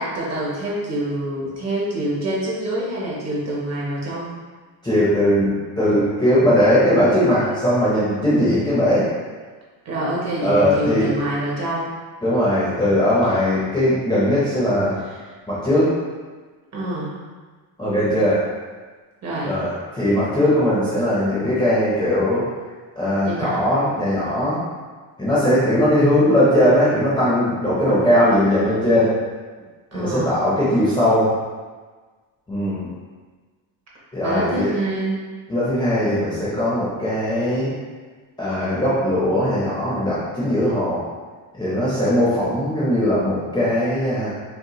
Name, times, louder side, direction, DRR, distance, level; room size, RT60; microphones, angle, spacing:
voice 1, 0.0-4.3 9.8-11.9 16.7-17.2 19.2-19.6 23.2-23.7 29.9-30.4 34.2-35.1, right 1 dB, 35° right, -5 dB, 0.9 m, -26 dB
voice 2, 4.8-9.1 10.4-11.1 12.2-15.0 15.5-15.9 17.8-18.4 19.4-22.4 23.0-24.6 25.2-29.1 29.9-31.3 32.5-32.9 34.1-34.7 35.5-37.7 38.4-41.0 41.5-44.3, equal, 10° left, -10 dB, 0.6 m, -19 dB
5.5 x 2.1 x 3.0 m, 1.4 s
cardioid pair, 175°, 48 cm